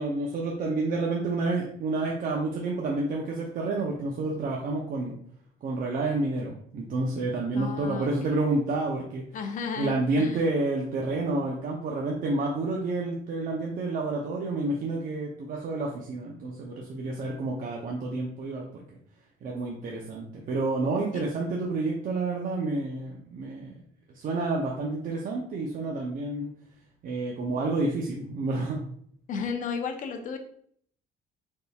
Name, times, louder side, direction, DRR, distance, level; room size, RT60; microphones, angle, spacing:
voice 1, 0.0-5.2 5.6-9.2 9.8-18.9 19.4-23.7 24.1-26.5 27.0-28.8, right 2 dB, 55° right, -1 dB, 0.7 m, -29 dB
voice 2, 7.5-8.4 9.3-10.5 21.1-21.3 29.3-30.4, left 5 dB, 50° left, 5 dB, 0.7 m, -34 dB
4.0 x 3.7 x 2.3 m, 0.62 s
cardioid pair, 110°, 17 cm